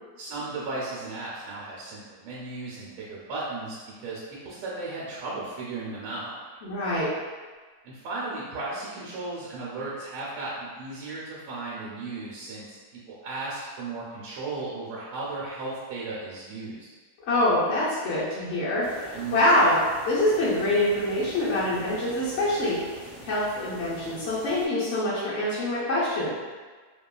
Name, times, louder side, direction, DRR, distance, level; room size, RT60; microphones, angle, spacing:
voice 1, 0.2-6.3 7.8-12.8 13.1-16.9 19.1-19.4, right 3 dB, 80° right, -6 dB, 1.2 m, -35 dB
voice 2, 6.6-7.1 17.3-19.8 20.1-22.8 23.2-26.3, left 1 dB, 70° left, -8 dB, 0.6 m, -25 dB
sound 1, 18.8-24.7, right 1 dB, 60° right, 0.4 m, -44 dB
2.8 x 2.3 x 2.3 m, 1.4 s
omnidirectional pair, 1.9 m